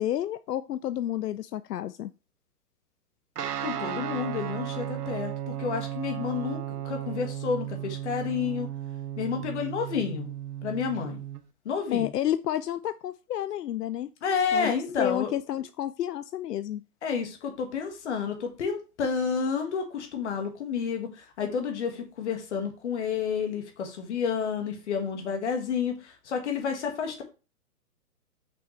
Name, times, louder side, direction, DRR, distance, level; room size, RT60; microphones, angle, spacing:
voice 1, 0.0-2.1 11.9-14.1 14.5-16.8, left 12 dB, 85° left, 13 dB, 0.6 m, -30 dB
Guitar, 3.4-11.4, right 11 dB, 80° right, 0.9 m, -35 dB
voice 2, 3.6-8.7 9.2-10.3 10.6-11.2 11.7-12.1 14.2-15.3 17.0-27.2, left 6 dB, 45° left, 4 dB, 1.9 m, -30 dB
6.2 x 5.8 x 3.2 m, 0.31 s
hypercardioid pair, 155°, 46 cm